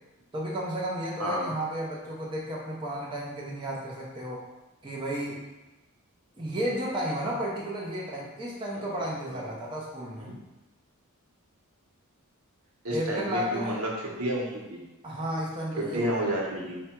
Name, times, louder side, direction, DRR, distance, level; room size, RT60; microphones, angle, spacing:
voice 1, 0.3-4.5 4.8-5.5 6.4-10.3 12.9-13.8 15.0-16.2, equal, 20° right, -5 dB, 0.6 m, -33 dB
voice 2, 1.2-1.5 8.7-9.4 10.2-10.3 12.8-14.8 15.8-16.8, right 1 dB, 70° right, -3 dB, 1.0 m, -31 dB
4.8 x 2.2 x 4.4 m, 1.1 s
head